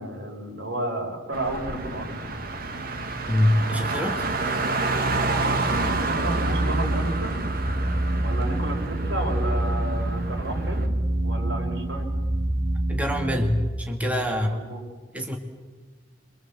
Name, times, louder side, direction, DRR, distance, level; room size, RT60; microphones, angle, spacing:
voice 1, 0.0-2.2 5.6-7.4 8.2-10.9 11.2-12.1 14.0-14.8, right 1 dB, 80° right, 1 dB, 5.9 m, -32 dB
Car, 1.3-10.9, right 3 dB, 55° right, 2.1 m, -29 dB
voice 2, 3.3-4.2 12.9-14.6 15.1-15.4, left 1 dB, 10° right, 2 dB, 2.0 m, -24 dB
sound 1, 5.6-13.7, right 1 dB, 40° right, 6.3 m, -27 dB
27.0 x 24.0 x 7.6 m, 1.3 s
head